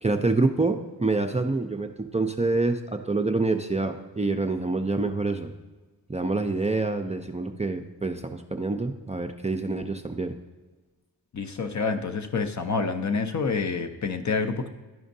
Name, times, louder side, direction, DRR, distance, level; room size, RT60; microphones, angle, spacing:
voice 1, 0.0-5.5 6.1-10.3, right 3 dB, 15° right, 5 dB, 0.5 m, -26 dB
voice 2, 11.3-14.7, left 4 dB, 45° left, 7 dB, 0.7 m, -28 dB
11.0 x 5.0 x 2.7 m, 1.2 s
supercardioid pair, 40°, 42 cm